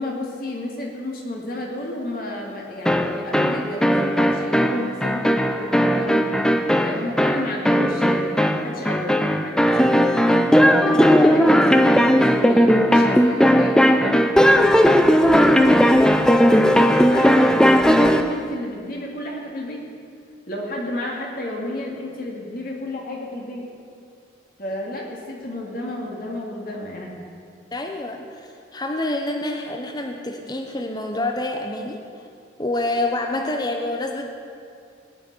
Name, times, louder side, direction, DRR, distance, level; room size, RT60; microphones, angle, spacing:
voice 1, 0.0-6.4 6.8-10.3 10.8-15.8 16.1-19.9 20.5-23.7 24.6-27.1 33.3-33.5, left 1 dB, 50° left, -2 dB, 2.4 m, -31 dB
sound 1, 2.8-18.3, equal, 5° left, 0.5 m, -17 dB
voice 2, 27.7-32.0 32.6-34.3, left 2 dB, 20° left, 3 dB, 0.9 m, -27 dB
19.5 x 6.5 x 9.5 m, 2.5 s
head